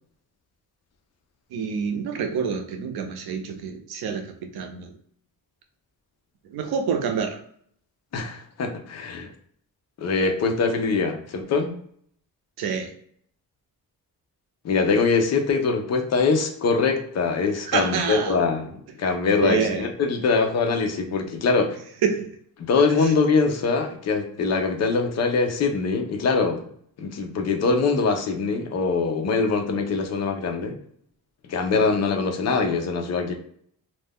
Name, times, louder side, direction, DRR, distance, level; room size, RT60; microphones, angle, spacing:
voice 1, 1.5-4.9 6.5-7.4 12.6-12.9 17.7-18.4 19.4-19.9 22.0-22.3 23.0-23.1, right 6 dB, 80° right, 6 dB, 0.6 m, -27 dB
voice 2, 8.1-9.3 10.0-11.8 14.6-18.7 19.0-21.8 22.7-26.6 27.0-30.8 31.5-33.3, left 4 dB, 45° left, 4 dB, 0.5 m, -23 dB
2.4 x 2.2 x 3.4 m, 0.64 s
wide cardioid pair, 175°, 37 cm